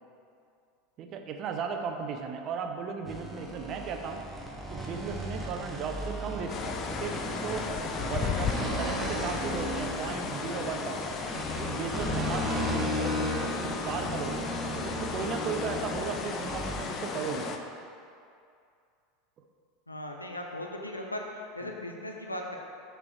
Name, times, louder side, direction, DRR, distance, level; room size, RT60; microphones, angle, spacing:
voice 1, 1.0-4.2 4.7-7.7 8.0-11.1 11.5-14.5 14.8-17.5 21.6-21.7, right 6 dB, 40° right, 4 dB, 0.6 m, -36 dB
sound 1, 3.0-16.9, left 1 dB, 5° right, 1.0 m, -35 dB
sound 2, 6.5-17.6, left 5 dB, 35° left, 0.5 m, -35 dB
voice 2, 19.9-21.2 21.5-22.6, left 1 dB, 85° left, 1 dB, 0.6 m, -37 dB
6.1 x 4.6 x 4.5 m, 2.4 s
figure-of-eight pair, 80°, 0 cm